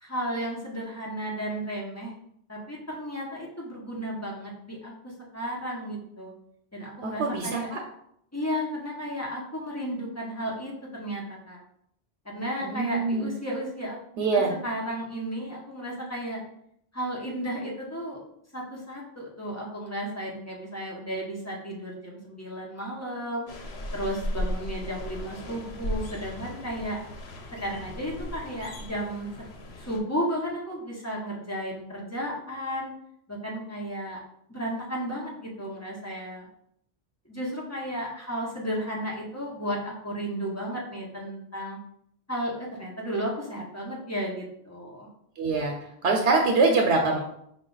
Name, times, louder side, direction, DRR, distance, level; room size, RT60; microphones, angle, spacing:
voice 1, 0.0-2.1 2.5-6.3 6.7-7.7 8.3-11.6 12.2-14.0 14.3-16.4 16.9-18.2 18.5-23.5 23.9-27.0 27.6-29.3 29.8-32.9 33.3-34.2 34.5-36.5 37.3-41.8 42.3-45.1, equal, 15° left, -4 dB, 0.8 m, -33 dB
voice 2, 7.0-7.8 12.6-13.4 14.2-14.5 45.4-45.7 46.0-47.2, right 3 dB, 85° right, 1 dB, 0.9 m, -24 dB
sound 1, 23.5-30.0, equal, 80° left, 0.9 m, -36 dB
4.6 x 2.3 x 3.8 m, 0.72 s
omnidirectional pair, 1.1 m